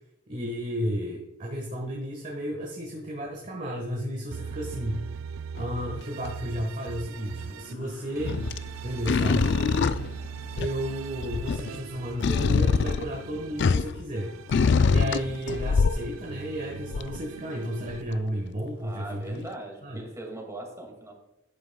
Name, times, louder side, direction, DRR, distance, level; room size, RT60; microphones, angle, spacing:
voice 1, 0.3-5.1 5.5-8.4 8.8-10.0 10.5-14.3 14.8-19.4 19.8-20.0, equal, 40° right, -1 dB, 1.4 m, -33 dB
sound 1, 4.3-7.7 8.2-13.7 14.2-18.0, right 6 dB, 75° right, 0.3 m, -40 dB
sound 2, 5.6-6.0 8.3-8.7 9.1-10.9 11.2-14.0 14.5-16.2 16.9-17.2 17.9-18.0, left 5 dB, 55° left, 0.4 m, -24 dB
Toilet flush, 7.2-13.4, left 3 dB, 80° left, 2.8 m, -53 dB
voice 2, 18.8-21.1, right 1 dB, 15° right, 1 dB, 2.1 m, -40 dB
12.0 x 9.3 x 2.3 m, 0.90 s
head